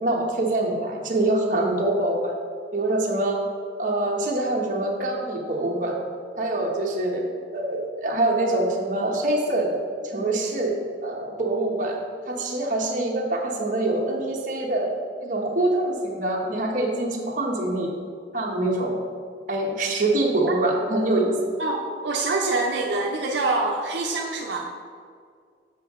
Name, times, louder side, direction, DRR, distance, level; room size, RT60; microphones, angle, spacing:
voice 1, 0.0-2.3 2.7-3.4 3.8-6.0 6.4-7.2 7.5-9.8 10.0-10.7 11.0-12.0 12.3-14.9 15.2-17.9 18.3-18.9 19.5-21.4, right 2 dB, 45° right, -1 dB, 1.1 m, -24 dB
voice 2, 21.6-24.7, right 3 dB, 80° right, 0 dB, 0.6 m, -25 dB
7.8 x 5.3 x 3.6 m, 2.1 s
head